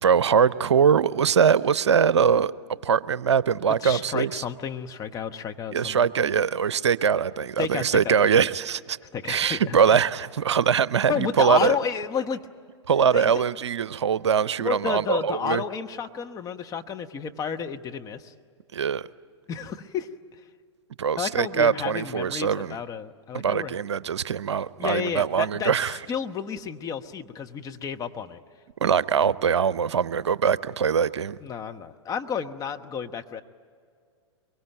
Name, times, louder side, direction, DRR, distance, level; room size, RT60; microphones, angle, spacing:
voice 1, 0.0-2.5 2.8-4.4 5.7-9.0 9.3-11.8 12.9-15.6 18.7-19.1 21.0-22.8 23.3-26.0 28.8-31.4, right 7 dB, 75° right, 19 dB, 0.6 m, -22 dB
voice 2, 3.8-6.1 7.6-8.5 9.1-10.0 11.1-12.4 13.1-13.3 14.6-18.3 19.5-20.1 21.1-23.8 24.8-28.4 31.4-33.4, left 7 dB, 25° left, 6 dB, 1.1 m, -31 dB
23.5 x 23.5 x 9.2 m, 2.2 s
figure-of-eight pair, 105°, 15 cm